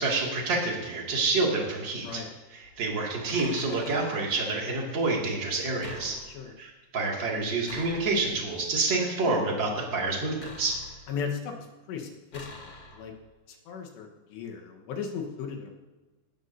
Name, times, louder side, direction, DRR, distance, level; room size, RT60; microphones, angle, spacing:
voice 1, 0.0-2.2 2.5-6.2 6.6-10.8, right 3 dB, 35° right, -2 dB, 2.2 m, -28 dB
voice 2, 2.0-2.3 6.0-6.5 11.1-11.5 11.9-13.1 13.5-15.7, left 6 dB, 80° left, 2 dB, 3.3 m, -37 dB
sound 1, 2.6-2.8 3.2-4.3 5.8-6.6 7.6-8.5 10.4-11.3 12.3-13.3, left 3 dB, 45° left, 1.5 m, -46 dB
19.0 x 13.5 x 2.7 m, 1.3 s
omnidirectional pair, 5.1 m